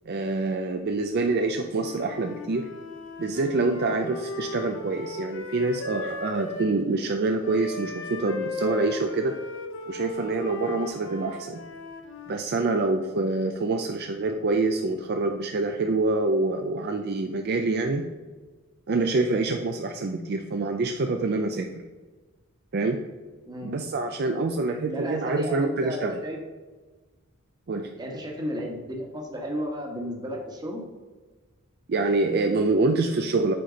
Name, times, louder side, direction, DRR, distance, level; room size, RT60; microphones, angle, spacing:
voice 1, 0.1-2.7 3.2-9.4 9.9-11.6 12.3-18.1 18.9-21.9 22.7-23.0 23.6-26.2 27.7-27.9 31.9-33.5, right 3 dB, 50° right, 5 dB, 0.4 m, -26 dB
Wind instrument woodwind instrument, 1.7-6.7 7.4-12.4, left 3 dB, 60° left, 0.8 m, -37 dB
voice 2, 23.5-23.9 24.8-26.4 27.9-30.8, equal, 20° right, 0 dB, 1.3 m, -33 dB
7.5 x 4.4 x 5.1 m, 1.3 s
head